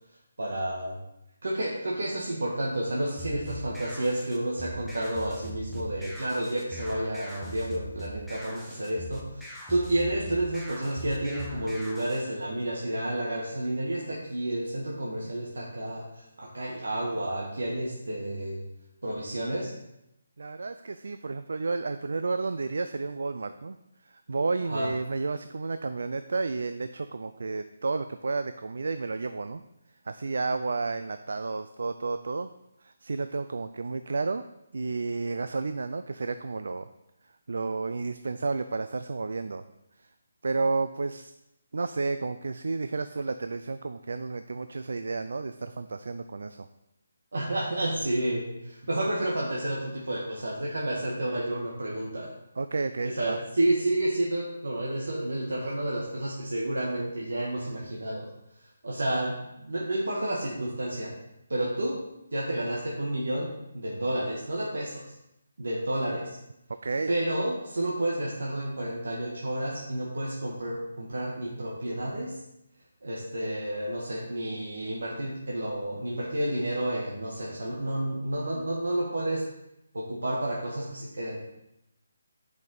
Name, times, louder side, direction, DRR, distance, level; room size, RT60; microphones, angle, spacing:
voice 1, 0.4-1.0 1.4-18.6 19.0-19.7 24.6-24.9 47.3-52.3 53.0-58.3 58.8-61.2 61.5-62.0 62.3-65.0 65.6-66.4 67.1-72.4 73.0-79.5 79.9-81.4, right 1 dB, 85° right, -4 dB, 1.5 m, -30 dB
sound 1, 3.2-12.2, right 1 dB, ahead, 0.5 m, -42 dB
voice 2, 20.4-23.8 24.1-29.6 30.1-32.5 32.8-34.4 34.7-36.9 37.5-39.6 40.0-40.1 40.4-41.3 41.7-46.7 52.6-53.4 66.7-67.1, right 3 dB, 60° right, 10 dB, 0.3 m, -31 dB
9.1 x 5.3 x 4.0 m, 0.85 s
hypercardioid pair, 180°, 0 cm